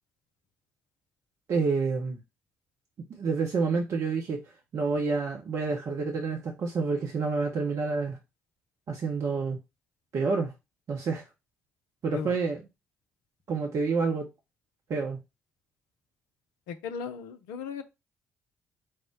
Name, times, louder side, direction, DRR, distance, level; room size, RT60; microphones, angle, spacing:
voice 1, 1.5-2.2 3.2-4.4 4.7-8.2 8.9-9.6 10.1-10.5 10.9-11.2 12.0-12.6 13.5-14.3 14.9-15.2, right 4 dB, 55° right, 0.8 m, -28 dB
voice 2, 16.7-17.8, left 7 dB, 75° left, 0.5 m, -36 dB
4.6 x 2.1 x 4.5 m
hypercardioid pair, 45°, 7 cm